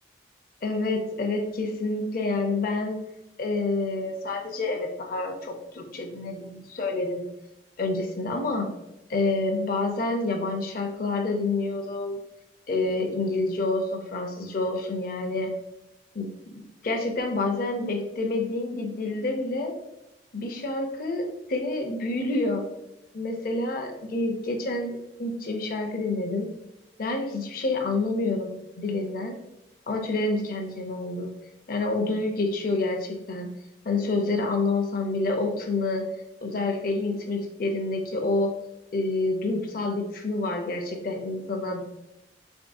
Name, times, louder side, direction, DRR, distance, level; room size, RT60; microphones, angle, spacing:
voice 1, 0.6-3.0 3.4-7.2 7.8-8.7 9.1-12.2 12.7-15.5 16.1-16.3 16.8-19.7 20.3-22.6 23.1-26.5 27.0-29.4 29.9-31.3 31.7-33.5 33.8-36.0 36.4-38.5 38.9-41.8, left 2 dB, 55° left, 2 dB, 0.5 m, -28 dB
3.5 x 3.4 x 2.5 m, 0.89 s
head